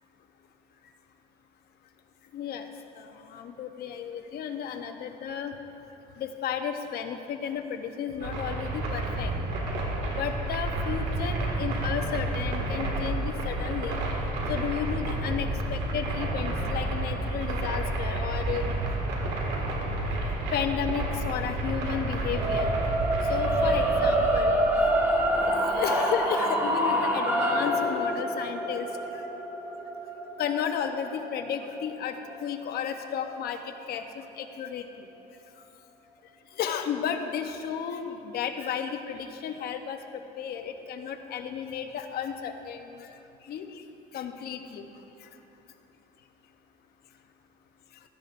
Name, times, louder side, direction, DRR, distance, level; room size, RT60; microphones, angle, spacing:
voice 1, 2.3-2.7 2.9-5.6 6.2-9.3 10.1-14.0 14.5-18.7 20.5-22.7 23.3-24.5 25.5-28.9 29.1-29.2 30.4-35.1 36.6-43.1 43.4-43.7 44.1-44.9, left 8 dB, 65° left, 6 dB, 0.9 m, -33 dB
sound 1, 8.2-25.5, right 2 dB, 80° right, 2.0 m, -30 dB
sound 2, 22.3-32.5, right 1 dB, 15° right, 2.2 m, -27 dB
16.5 x 12.0 x 2.6 m, 2.8 s
cardioid pair, 110°, 17 cm